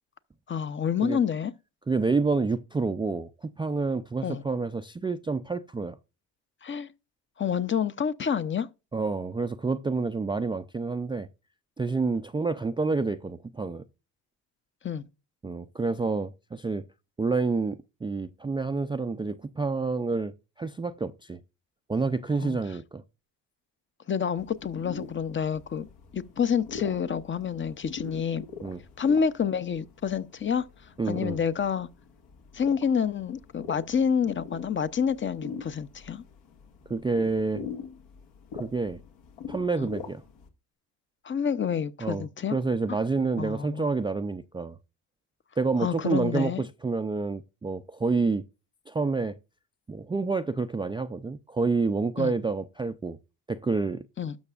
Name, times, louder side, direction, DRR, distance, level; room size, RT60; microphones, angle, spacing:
voice 1, 0.5-1.5 4.2-4.4 6.6-6.9 7.4-8.7 14.8-15.0 22.4-22.6 24.1-25.9 26.1-28.5 29.0-30.7 31.1-31.9 32.5-36.2 41.2-42.6 43.4-43.9 45.8-46.6 52.2-52.3 54.2-54.4, left 7 dB, 30° left, 0.6 m, -28 dB
voice 2, 1.9-6.0 8.9-11.3 11.8-13.8 15.4-16.8 17.2-20.3 20.6-21.4 21.9-23.0 28.6-28.8 31.0-31.4 36.9-37.6 38.5-39.0 39.5-40.2 42.0-44.8 45.6-48.4 48.9-49.3 49.9-53.2 53.5-54.0, right 4 dB, 10° right, 0.4 m, -28 dB
sound 1, 24.4-40.5, left 6 dB, 75° left, 2.0 m, -43 dB
12.5 x 6.0 x 2.4 m
supercardioid pair, 85°, 42 cm